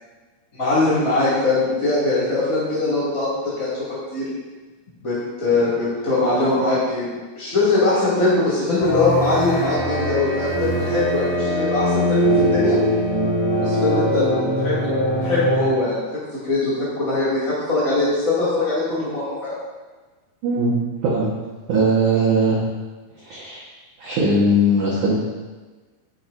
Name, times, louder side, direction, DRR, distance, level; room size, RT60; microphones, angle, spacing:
voice 1, 0.5-3.7 4.1-4.2 5.0-12.8 13.6-14.8 15.2-16.0 16.4-19.5, left 2 dB, 30° left, -11 dB, 1.5 m, -21 dB
sound 1, 8.8-15.7, equal, 55° left, 2.5 m, -21 dB
voice 2, 20.4-20.8 21.0-21.3 21.7-22.6 23.3-23.6 24.0-25.2, right 1 dB, 75° right, -6 dB, 1.8 m, -19 dB
17.5 x 6.1 x 2.6 m, 1.3 s
omnidirectional pair, 5.8 m